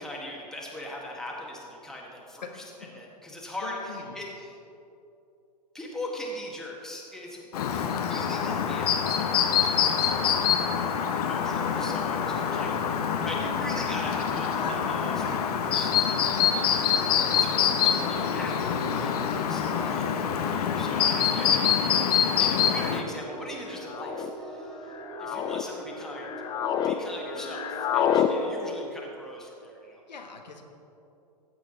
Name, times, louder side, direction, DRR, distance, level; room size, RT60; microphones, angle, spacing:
voice 1, 0.0-2.6 2.9-4.6 5.7-10.3 11.3-16.3 17.4-21.7 22.0-24.9 25.2-26.3 26.8-30.0, left 1 dB, ahead, -3 dB, 1.8 m, -41 dB
voice 2, 3.6-4.2 14.5-15.3 30.1-30.6, left 4 dB, 90° left, 3 dB, 1.4 m, -40 dB
Chirp tweet, 7.5-23.0, left 8 dB, 65° left, 1.0 m, -25 dB
sound 1, 10.0-28.6, right 1 dB, 45° right, 2.8 m, -42 dB
sound 2, 21.4-21.7 22.6-23.0 23.8-24.3 24.9-25.6 26.1-27.0 27.2-28.3, left 10 dB, 20° left, 0.4 m, -29 dB
15.0 x 8.0 x 3.9 m, 2.7 s
hypercardioid pair, 120°, 21 cm